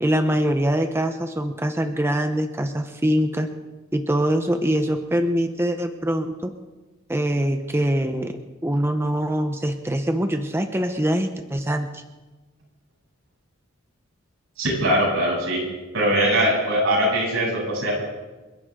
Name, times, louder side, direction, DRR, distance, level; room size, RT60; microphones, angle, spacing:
voice 1, 0.0-3.5 3.9-6.5 7.1-8.3 8.6-12.0, right 1 dB, 10° right, 6 dB, 0.9 m, -23 dB
voice 2, 14.6-15.6 15.9-17.9, equal, 80° right, -3 dB, 7.5 m, -21 dB
29.5 x 12.0 x 3.8 m, 1.2 s
head